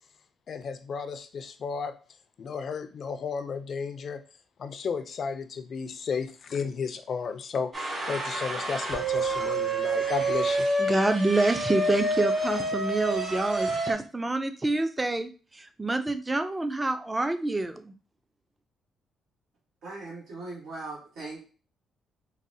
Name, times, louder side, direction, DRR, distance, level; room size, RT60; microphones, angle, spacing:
voice 1, 0.5-1.9 2.4-4.2 4.6-10.7, left 5 dB, 55° left, 10 dB, 0.4 m, -33 dB
sound 1, 7.7-13.9, right 2 dB, 35° right, 1.3 m, -28 dB
voice 2, 10.8-17.9, right 2 dB, 15° right, 9 dB, 0.4 m, -27 dB
voice 3, 19.8-21.5, right 2 dB, 80° right, -7 dB, 1.3 m, -39 dB
3.9 x 2.0 x 2.6 m, 0.37 s
cardioid pair, 90°, 0 cm